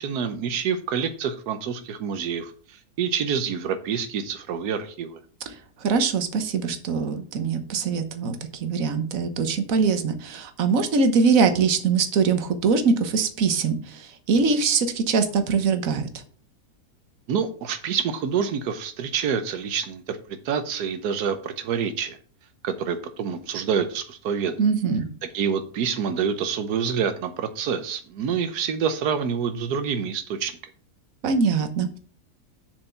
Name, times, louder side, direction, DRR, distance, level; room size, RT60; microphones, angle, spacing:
voice 1, 0.0-2.5 3.0-5.2 17.3-20.2 20.4-22.2 22.6-24.6 25.3-30.5, right 7 dB, 85° right, 9 dB, 1.3 m, -27 dB
voice 2, 5.8-16.2 24.6-25.1 31.2-32.0, right 5 dB, 60° right, 8 dB, 1.5 m, -23 dB
7.1 x 5.1 x 6.8 m, 0.43 s
omnidirectional pair, 1.6 m